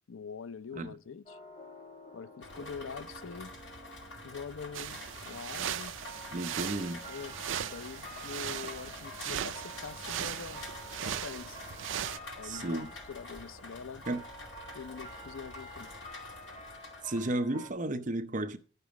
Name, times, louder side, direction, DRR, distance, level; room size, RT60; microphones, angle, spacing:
voice 1, 0.1-1.4 2.1-3.5 4.2-6.0 7.1-7.4 7.6-10.6 11.0-11.6 12.4-14.0 14.7-15.9, left 6 dB, 85° left, 0.5 m, -44 dB
sound 1, 1.3-17.7, equal, 35° left, 1.7 m, -50 dB
Rain, 2.4-17.4, left 2 dB, 65° left, 2.1 m, -48 dB
sound 2, 4.7-12.2, right 10 dB, 75° right, 0.5 m, -38 dB
voice 2, 6.3-7.0 12.4-12.9 14.1-14.2 17.0-18.6, right 1 dB, 40° right, 0.7 m, -33 dB
10.5 x 6.8 x 5.9 m
head